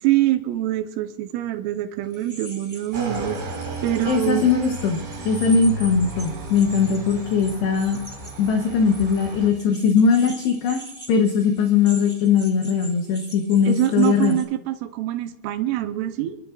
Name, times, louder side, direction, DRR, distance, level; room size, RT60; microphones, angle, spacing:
voice 1, 0.0-4.5 13.7-16.4, right 14 dB, 85° right, 8 dB, 3.2 m, -24 dB
sound 1, 2.1-14.4, right 1 dB, 15° right, 1.3 m, -42 dB
Motorcycle / Engine, 2.9-9.5, right 1 dB, 60° right, 6.9 m, -34 dB
voice 2, 4.1-8.0 8.4-10.8 11.1-14.4, left 6 dB, 75° left, 3 dB, 2.6 m, -20 dB
29.5 x 12.5 x 2.5 m, 0.94 s
omnidirectional pair, 6.0 m